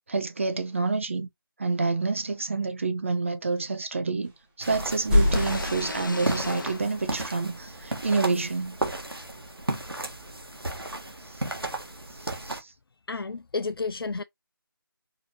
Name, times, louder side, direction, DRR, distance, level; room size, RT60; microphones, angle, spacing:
voice 1, 0.1-1.3 1.6-4.3 4.6-8.8 11.2-11.4 12.1-12.7, right 3 dB, 35° right, 0.5 m, -28 dB
sound 1, 4.2-4.4 4.7-6.7, left 1 dB, 5° right, 0.9 m, -26 dB
sound 2, 4.6-12.6, right 2 dB, 90° right, 1.5 m, -34 dB
sound 3, 5.2-8.0, left 3 dB, 60° left, 0.8 m, -38 dB
voice 2, 13.1-14.2, left 4 dB, 80° left, 0.4 m, -31 dB
4.6 x 2.7 x 2.9 m
figure-of-eight pair, 160°, 12 cm